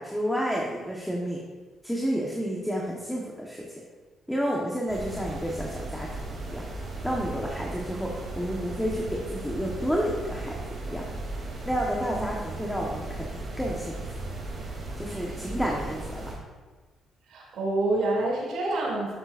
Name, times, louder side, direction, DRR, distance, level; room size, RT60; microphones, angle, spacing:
voice 1, 0.0-1.4 1.8-3.7 4.3-6.1 6.5-6.6 7.0-10.5 10.9-11.1 11.6-14.1 15.0-16.3, equal, 5° left, -3 dB, 1.2 m, -30 dB
sound 1, 4.9-16.4, right 2 dB, 50° right, 2.9 m, -36 dB
voice 2, 17.3-19.1, right 2 dB, 75° right, -4 dB, 2.8 m, -27 dB
11.0 x 7.8 x 2.6 m, 1.4 s
cardioid pair, 90°, 0 cm